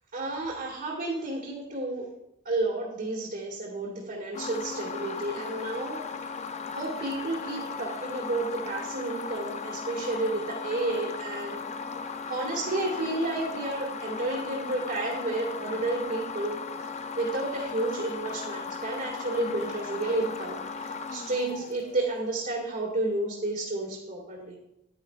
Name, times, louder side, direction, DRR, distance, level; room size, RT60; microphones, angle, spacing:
voice 1, 0.1-2.0 2.5-6.0 6.7-11.6 12.3-16.6 17.2-20.6 21.1-24.5, right 2 dB, 45° right, -5 dB, 1.9 m, -31 dB
sound 1, 4.3-22.3, left 5 dB, 35° left, 0.5 m, -37 dB
9.9 x 9.8 x 2.4 m, 0.82 s
head